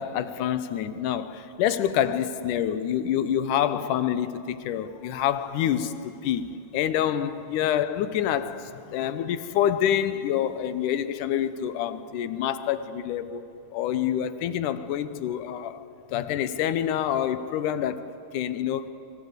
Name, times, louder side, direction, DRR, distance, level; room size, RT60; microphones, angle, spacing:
voice 1, 0.0-6.5 6.7-13.4 13.7-15.8 16.1-18.9, left 10 dB, 85° left, 12 dB, 2.5 m, -27 dB
26.5 x 24.0 x 8.2 m, 2.6 s
omnidirectional pair, 3.5 m